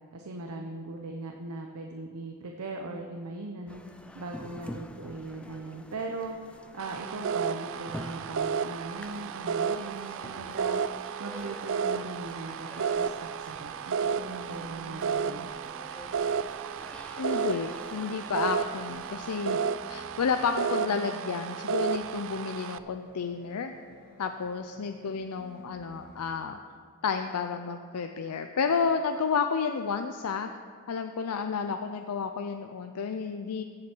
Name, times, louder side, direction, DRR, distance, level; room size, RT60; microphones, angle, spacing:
voice 1, 0.1-3.8 4.1-6.4 6.7-10.8 11.2-15.5, right 2 dB, 85° right, 2 dB, 0.8 m, -39 dB
sound 1, 3.7-19.6, equal, 5° left, 0.5 m, -47 dB
sound 2, 6.8-22.8, right 6 dB, 60° right, 0.4 m, -32 dB
sound 3, 14.5-26.5, left 1 dB, 40° left, 1.0 m, -53 dB
voice 2, 17.2-23.7 24.2-26.6 27.0-30.5 30.9-33.6, left 5 dB, 85° left, 7 dB, 0.5 m, -31 dB
16.0 x 7.7 x 4.5 m, 2.1 s
head